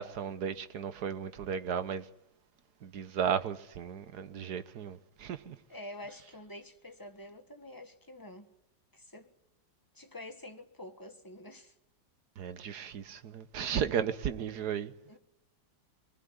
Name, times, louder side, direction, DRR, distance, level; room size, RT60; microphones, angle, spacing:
voice 1, 0.0-2.1 2.8-5.6 12.4-14.9, right 7 dB, 60° right, 1.6 m, -35 dB
voice 2, 5.7-8.5 8.9-9.3 9.9-11.7 15.1-15.2, left 1 dB, 10° left, 1.6 m, -47 dB
26.5 x 20.0 x 9.6 m
omnidirectional pair, 2.1 m